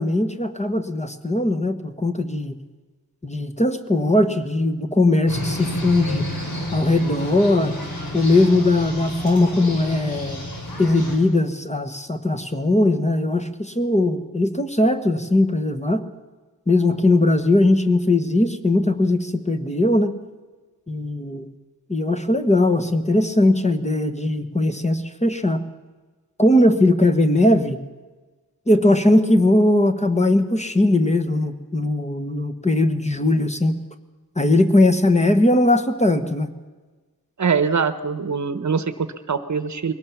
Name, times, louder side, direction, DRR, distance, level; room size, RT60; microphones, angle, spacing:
voice 1, 0.0-2.5 3.2-6.3 6.7-7.7 8.1-10.4 10.8-16.0 16.7-20.2 20.9-21.5 21.9-25.6 26.4-27.8 28.7-33.8 34.3-36.5, left 1 dB, 20° left, 7 dB, 1.3 m, -19 dB
sound 1, 5.3-11.1, left 1 dB, 70° left, 6.0 m, -30 dB
voice 2, 37.4-39.9, right 5 dB, 50° right, 11 dB, 1.1 m, -23 dB
22.0 x 18.0 x 7.2 m, 1.3 s
wide cardioid pair, 140°, 38 cm